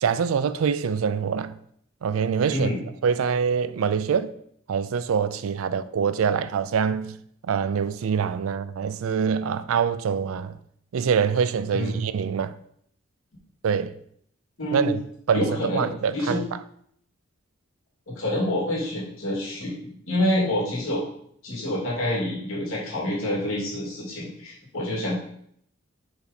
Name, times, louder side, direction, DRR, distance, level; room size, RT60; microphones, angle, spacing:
voice 1, 0.0-1.6 2.0-4.3 4.7-7.2 7.5-10.6 10.9-12.6 13.6-13.9 14.7-15.0 15.3-16.4, right 6 dB, 90° right, 0.4 m, -25 dB
voice 2, 14.6-14.9 15.3-15.9 16.1-16.4 18.1-21.0 21.4-25.2, left 1 dB, 90° left, 2.3 m, -27 dB
5.0 x 3.9 x 5.1 m
head